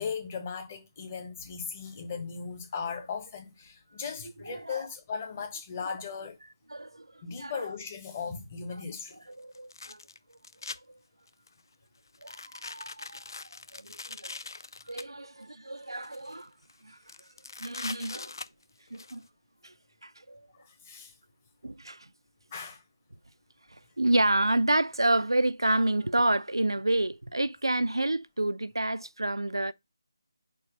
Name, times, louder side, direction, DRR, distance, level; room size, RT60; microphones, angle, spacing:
voice 1, 0.0-6.4 7.2-9.2 20.6-21.1 22.5-22.8, left 6 dB, 30° left, 1.5 m, -37 dB
voice 2, 4.4-4.8 6.7-7.1 7.4-7.6 9.3-10.0 12.2-13.2 13.7-14.4 14.9-16.5 16.8-17.0 17.6-18.3 18.9-19.2 19.6-19.7 20.0-20.4 21.6-22.0 24.0-29.7, right 1 dB, 90° right, 0.5 m, -29 dB
sound 1, 8.2-8.3 9.5-10.8 11.3-11.6 12.1-15.0 15.8-16.4 16.7-16.8 17.1-19.2, left 3 dB, 60° left, 0.4 m, -42 dB
4.3 x 4.3 x 5.1 m
figure-of-eight pair, 160°, 2 cm